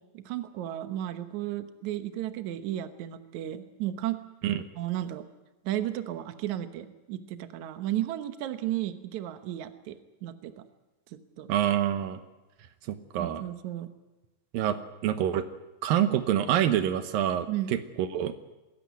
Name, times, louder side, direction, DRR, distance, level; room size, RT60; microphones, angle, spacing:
voice 1, 0.1-4.2 4.8-5.2 5.6-10.7 11.1-11.5 13.2-13.9 17.5-17.7, right 13 dB, 65° right, 9 dB, 2.3 m, -34 dB
voice 2, 11.5-12.2 12.9-13.4 14.5-15.5 15.8-18.3, right 11 dB, 85° right, 10 dB, 2.8 m, -27 dB
21.0 x 17.0 x 9.4 m, 1.1 s
omnidirectional pair, 3.9 m